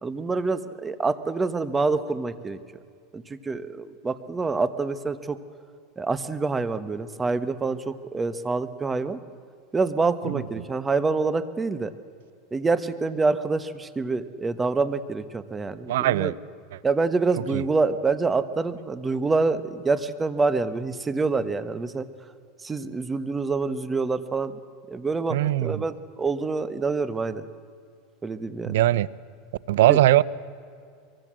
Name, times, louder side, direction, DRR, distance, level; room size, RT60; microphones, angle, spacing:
voice 1, 0.0-2.6 3.1-5.4 6.0-9.2 9.7-11.9 12.5-16.3 16.8-22.1 22.6-24.5 24.9-27.4 28.2-28.8 29.9-30.0, right 3 dB, 15° right, 13 dB, 1.2 m, -26 dB
voice 2, 15.9-16.3 17.5-17.6 25.3-25.8 28.7-29.1 29.7-30.2, right 14 dB, 80° right, 21 dB, 0.7 m, -20 dB
24.0 x 23.5 x 7.6 m, 2.3 s
supercardioid pair, 130°, 0 cm